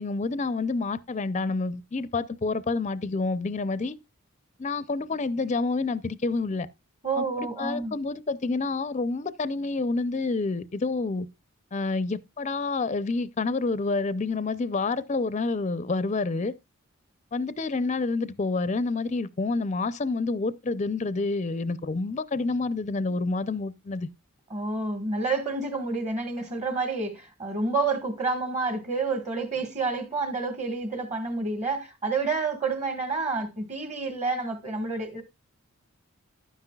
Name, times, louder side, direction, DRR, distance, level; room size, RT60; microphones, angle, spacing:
voice 1, 0.0-4.0 4.6-6.7 7.2-11.3 11.7-16.5 17.3-24.1, left 3 dB, 35° left, 0.5 m, -28 dB
voice 2, 7.0-7.9 24.5-35.2, right 3 dB, 35° right, 1.6 m, -29 dB
11.5 x 9.7 x 2.3 m
head